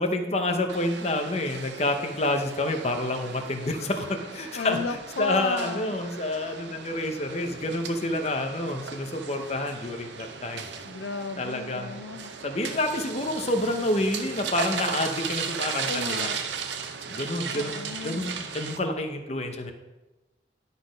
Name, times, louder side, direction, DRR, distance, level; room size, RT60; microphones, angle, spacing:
voice 1, 0.0-4.8 5.2-10.6 11.4-12.0 12.4-16.3 17.1-19.7, left 1 dB, 35° left, 5 dB, 0.8 m, -28 dB
sound 1, 0.7-18.8, right 6 dB, 75° right, 0.7 m, -36 dB
voice 2, 4.6-6.0 10.8-12.3 15.8-16.4 17.5-18.3, left 4 dB, 80° left, 9 dB, 0.4 m, -34 dB
11.5 x 4.1 x 5.2 m, 1.1 s
head